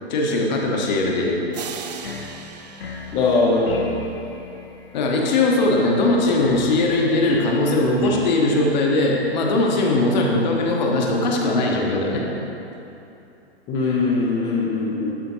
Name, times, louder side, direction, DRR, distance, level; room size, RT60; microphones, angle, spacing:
voice 1, 0.1-1.5 4.9-12.2, left 2 dB, 45° left, -1 dB, 1.1 m, -20 dB
sound 1, 1.5-4.2, right 7 dB, 45° right, 0.4 m, -38 dB
sound 2, 1.9-10.0, left 4 dB, 65° left, 0.8 m, -38 dB
voice 2, 3.1-3.8 13.7-15.1, left 3 dB, 15° left, -5 dB, 0.6 m, -21 dB
12.0 x 5.0 x 2.7 m, 2.9 s
figure-of-eight pair, 120°, 32 cm